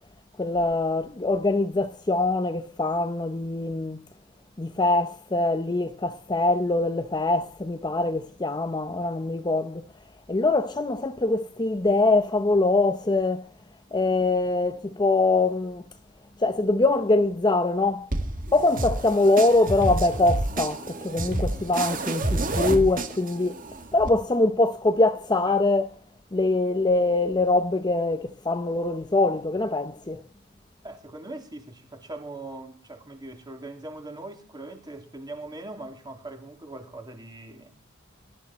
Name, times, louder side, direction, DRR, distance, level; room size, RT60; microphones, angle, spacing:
voice 1, 0.4-4.0 4.6-9.8 10.3-13.5 13.9-15.8 16.4-18.1 18.5-23.6 23.9-25.9 26.3-30.2, left 2 dB, 20° left, 0.7 m, -23 dB
sound 1, 18.1-24.1, right 2 dB, 40° right, 1.9 m, -29 dB
voice 2, 30.8-37.8, right 2 dB, 20° right, 2.8 m, -41 dB
20.0 x 12.5 x 4.2 m
head